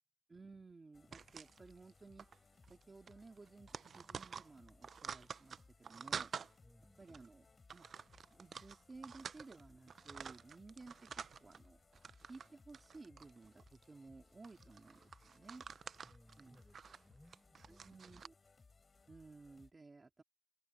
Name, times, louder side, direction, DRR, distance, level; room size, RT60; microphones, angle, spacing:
voice 1, 0.3-2.3 2.7-6.3 7.0-7.5 7.7-7.9 8.3-11.8 12.3-15.7 16.4-16.6 17.7-18.3 19.1-20.2, right 3 dB, 35° right, 2.1 m, -57 dB
sound 1, 0.9-19.7, left 4 dB, 45° left, 3.8 m, -66 dB
sound 2, 1.1-1.9 2.2-2.4 2.6-2.8 3.1-6.5 7.1-7.3 7.7-9.6 9.9-11.6 11.9-12.5 12.7-13.8 14.4-18.3, right 6 dB, 85° right, 0.4 m, -49 dB
voice 2, 6.6-7.0 16.0-18.0, equal, ahead, 6.0 m, -65 dB
open air
wide cardioid pair, 140°, 0 cm